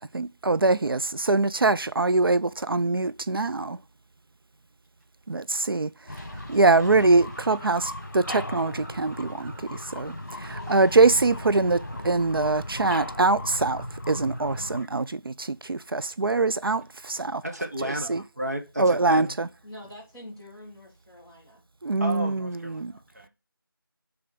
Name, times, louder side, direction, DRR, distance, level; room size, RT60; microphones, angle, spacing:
voice 1, 0.1-3.8 5.3-17.4 18.1-18.2 18.8-19.5 21.8-22.9, right 3 dB, 75° right, 0.4 m, -23 dB
sound 1, 6.1-14.8, left 1 dB, 45° left, 1.4 m, -37 dB
voice 2, 17.4-19.4 22.0-23.3, right 1 dB, 45° right, 1.4 m, -33 dB
voice 3, 19.6-21.6, left 1 dB, 10° right, 1.7 m, -45 dB
7.0 x 3.4 x 5.2 m
figure-of-eight pair, 180°, 12 cm